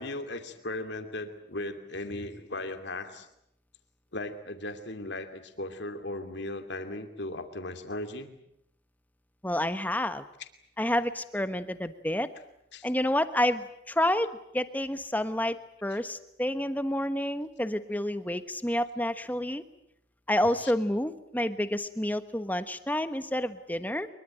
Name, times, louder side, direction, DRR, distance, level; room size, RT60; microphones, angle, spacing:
voice 1, 0.0-3.3 4.1-8.3 12.7-12.9 20.6-20.7, left 2 dB, 65° left, 7 dB, 2.7 m, -37 dB
voice 2, 9.4-10.2 10.8-12.3 12.8-14.3 14.5-15.6 15.8-19.6 20.3-24.1, left 1 dB, 10° left, 11 dB, 1.2 m, -29 dB
24.0 x 23.0 x 9.1 m, 0.76 s
head